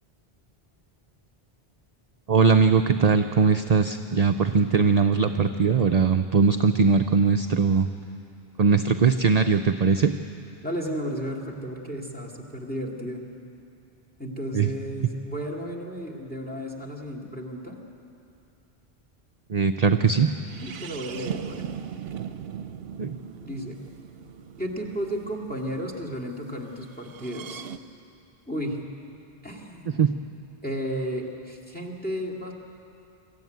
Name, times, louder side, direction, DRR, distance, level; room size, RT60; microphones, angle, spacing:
voice 1, 2.3-7.9 8.6-10.1 14.5-14.7 19.5-20.3 23.0-23.2 30.0-30.1, right 5 dB, 45° right, 7 dB, 0.6 m, -20 dB
voice 2, 10.6-13.2 14.2-17.8 20.6-21.7 23.4-23.8 24.6-27.6 28.5-28.8 29.4-30.0 30.6-32.5, equal, 10° left, 0 dB, 2.4 m, -33 dB
sound 1, 20.5-26.2 27.0-27.8, right 8 dB, 70° right, 0.9 m, -39 dB
24.0 x 14.0 x 9.4 m, 2.6 s
omnidirectional pair, 1.0 m